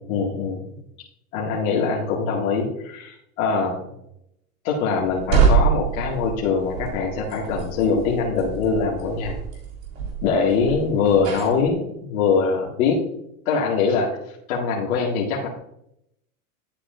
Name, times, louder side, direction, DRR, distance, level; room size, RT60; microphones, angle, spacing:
voice 1, 0.1-0.6 1.3-3.9 4.6-9.4 10.2-13.0 13.5-14.1 14.5-15.5, left 5 dB, 65° left, -4 dB, 2.2 m, -23 dB
sound 1, 5.0-11.7, right 6 dB, 65° right, 3.7 m, -25 dB
12.0 x 8.3 x 2.6 m, 0.78 s
hypercardioid pair, 110°, 43 cm